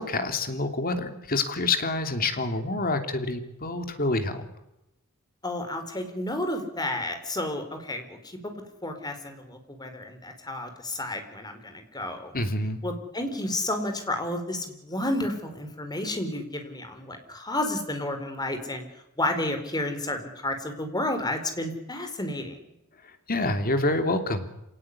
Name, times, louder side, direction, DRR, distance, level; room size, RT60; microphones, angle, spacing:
voice 1, 0.0-4.5 12.3-12.8 23.3-24.5, left 2 dB, 40° left, 7 dB, 3.1 m, -27 dB
voice 2, 5.4-8.5 8.8-12.3 12.8-18.8 19.2-22.6, left 1 dB, 20° left, 6 dB, 4.5 m, -31 dB
27.0 x 18.5 x 9.9 m, 0.86 s
head